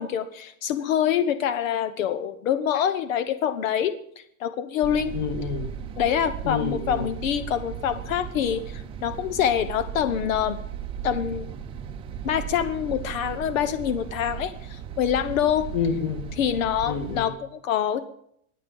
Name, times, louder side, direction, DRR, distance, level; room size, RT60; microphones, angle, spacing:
voice 1, 0.0-5.1 6.0-10.6 11.0-11.5 12.2-15.7 16.4-18.1, left 9 dB, 80° left, 12 dB, 1.1 m, -26 dB
sound 1, 4.8-17.3, right 9 dB, 15° right, 0.6 m, -36 dB
voice 2, 5.1-5.7 6.4-7.1 15.7-16.3 16.8-17.3, left 6 dB, 40° left, 9 dB, 1.8 m, -28 dB
22.0 x 8.9 x 5.4 m, 0.71 s
supercardioid pair, 175°, 39 cm